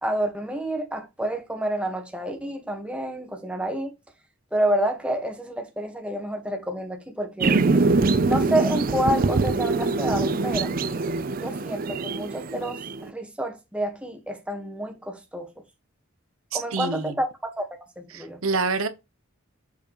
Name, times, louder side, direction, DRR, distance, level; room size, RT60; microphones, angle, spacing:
voice 1, 0.0-3.9 4.5-7.6 8.2-10.7 11.3-15.5 16.5-17.7 18.0-18.4, right 1 dB, 5° right, 1.3 m, -29 dB
sound 1, 7.4-13.1, right 3 dB, 40° right, 0.5 m, -23 dB
voice 2, 16.5-17.2 18.1-18.9, right 4 dB, 80° right, 0.9 m, -27 dB
7.1 x 4.7 x 3.0 m
head